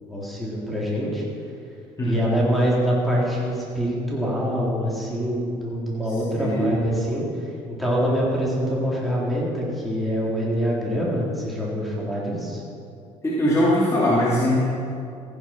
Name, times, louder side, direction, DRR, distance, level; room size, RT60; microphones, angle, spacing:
voice 1, 0.1-1.2 2.0-12.6, equal, ahead, -5 dB, 3.8 m, -25 dB
voice 2, 2.0-2.3 6.3-6.8 13.2-14.6, equal, 20° left, -7 dB, 2.8 m, -21 dB
16.0 x 9.7 x 5.9 m, 2.5 s
cardioid pair, 100°, 14 cm